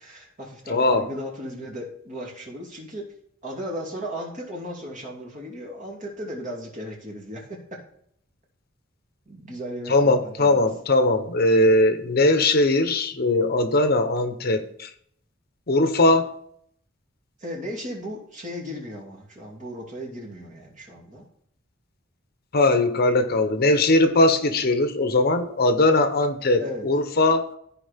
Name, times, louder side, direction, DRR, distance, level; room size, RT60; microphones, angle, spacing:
voice 1, 0.0-3.1 3.4-7.8 9.3-10.7 17.4-21.2 26.6-26.9, equal, 40° right, 0 dB, 2.7 m, -36 dB
voice 2, 0.7-1.1 9.9-14.9 15.7-16.3 22.5-27.5, left 2 dB, 50° left, 8 dB, 0.9 m, -20 dB
14.0 x 4.9 x 3.5 m, 0.67 s
head